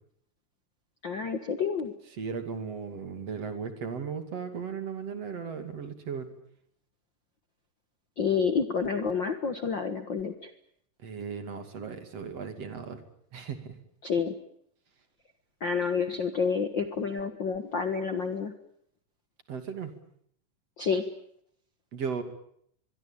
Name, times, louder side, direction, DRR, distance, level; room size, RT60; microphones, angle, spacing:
voice 1, 1.0-1.9 8.2-10.5 14.0-14.3 15.6-18.5 20.8-21.0, left 6 dB, 50° left, 9 dB, 1.5 m, -29 dB
voice 2, 2.2-6.3 11.0-13.0 13.3-13.8 19.5-20.0 21.9-22.2, right 6 dB, 50° right, 8 dB, 3.4 m, -36 dB
23.5 x 23.5 x 8.9 m, 0.68 s
omnidirectional pair, 4.0 m